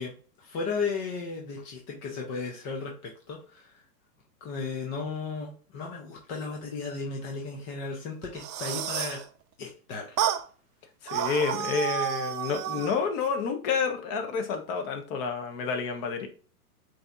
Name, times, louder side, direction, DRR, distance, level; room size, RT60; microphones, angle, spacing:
voice 1, 0.0-3.8 4.4-9.2 9.6-10.2 11.6-11.8, left 4 dB, 15° left, 0 dB, 0.4 m, -35 dB
sound 1, 8.2-9.2 10.2-10.4 11.1-13.0, right 10 dB, 85° right, 0.8 m, -30 dB
voice 2, 11.0-16.3, left 5 dB, 35° left, 6 dB, 1.0 m, -29 dB
7.5 x 2.9 x 2.4 m, 0.39 s
hypercardioid pair, 130°, 47 cm